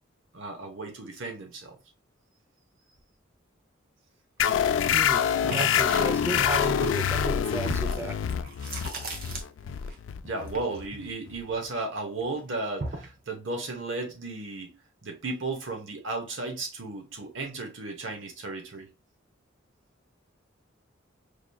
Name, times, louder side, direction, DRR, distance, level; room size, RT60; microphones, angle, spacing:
voice 1, 0.3-1.8 10.2-14.8 15.0-18.9, right 3 dB, 75° right, 1.1 m, -34 dB
sound 1, 4.4-11.5, left 8 dB, 70° left, 0.3 m, -26 dB
voice 2, 4.9-8.2, right 1 dB, 15° right, 0.5 m, -33 dB
sound 2, 5.4-10.0 10.2-11.9 12.2-13.2, right 2 dB, 50° right, 0.9 m, -38 dB
4.9 x 2.9 x 2.3 m
head